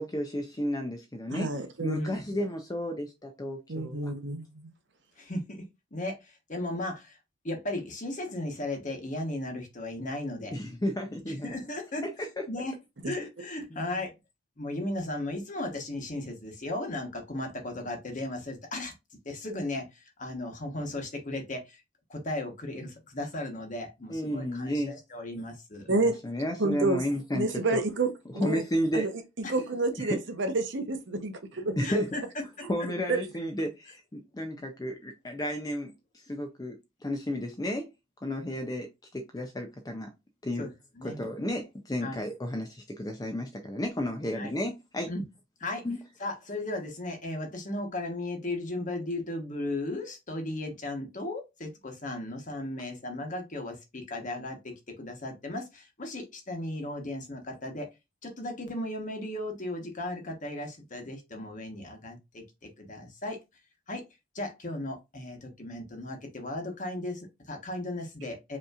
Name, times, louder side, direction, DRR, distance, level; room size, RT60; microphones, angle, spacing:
voice 1, 0.0-1.5 1.8-4.1 10.5-11.5 12.2-12.4 13.2-13.3 13.7-13.8 24.1-24.9 25.9-27.8 28.4-29.1 30.0-30.2 31.8-32.1 32.7-36.0 36.3-37.9 38.2-38.9 39.1-40.1 40.4-40.7 41.0-45.1 45.8-46.0, equal, 20° left, 0.5 m, -32 dB
voice 2, 1.3-2.2 3.7-4.7 13.0-13.1 25.9-26.2 26.6-27.0 27.3-28.6 28.9-32.0 33.1-33.2, right 2 dB, 60° right, 0.8 m, -29 dB
voice 3, 1.9-2.3 5.2-7.2 7.4-10.5 11.2-12.8 13.0-14.1 14.6-18.9 19.2-21.8 22.1-25.9 29.4-29.5 31.8-32.2 40.6-40.7 41.0-41.2 42.0-42.2 44.3-44.5 45.1-45.2 45.6-45.8 46.2-57.9 58.2-62.4 62.8-63.4 63.9-64.0 64.3-68.6, left 1 dB, 40° left, 1.1 m, -36 dB
5.3 x 2.9 x 2.4 m
head